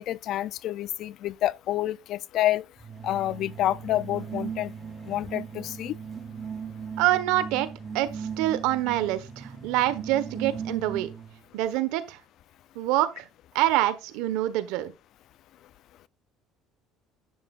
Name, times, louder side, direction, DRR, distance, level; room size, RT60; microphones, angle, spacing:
voice 1, 0.0-2.6 3.0-4.7 5.0-6.0, left 13 dB, 55° left, 0.4 m, -28 dB
sound 1, 2.8-11.4, right 6 dB, 25° right, 0.9 m, -38 dB
voice 2, 7.0-7.7 7.9-11.1 11.5-12.2 12.7-13.3 13.5-14.9, right 14 dB, 85° right, 1.2 m, -26 dB
11.0 x 8.1 x 2.4 m
cardioid pair, 135°, 0 cm